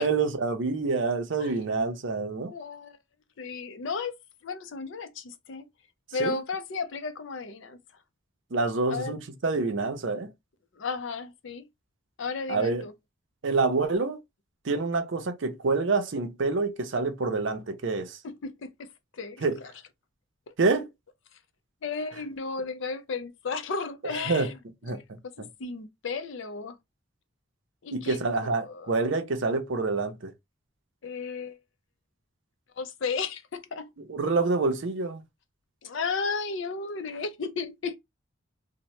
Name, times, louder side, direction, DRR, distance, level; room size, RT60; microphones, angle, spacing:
voice 1, 0.0-2.5 6.2-6.4 8.5-10.3 12.5-12.8 13.4-14.2 14.6-18.2 19.4-19.6 20.6-20.9 24.0-24.5 24.8-25.5 27.9-30.3 34.1-35.2, right 3 dB, 60° right, 0.6 m, -27 dB
voice 2, 2.5-3.0 3.4-4.1 4.4-5.7 6.1-7.8 8.9-9.1 10.7-11.7 12.2-12.9 18.2-18.9 19.1-19.7 20.5-20.6 21.8-24.5 24.9-25.0 25.2-26.8 27.8-28.9 31.0-31.6 32.8-33.9 35.8-38.0, left 4 dB, 65° left, 0.4 m, -34 dB
2.8 x 2.0 x 3.0 m
head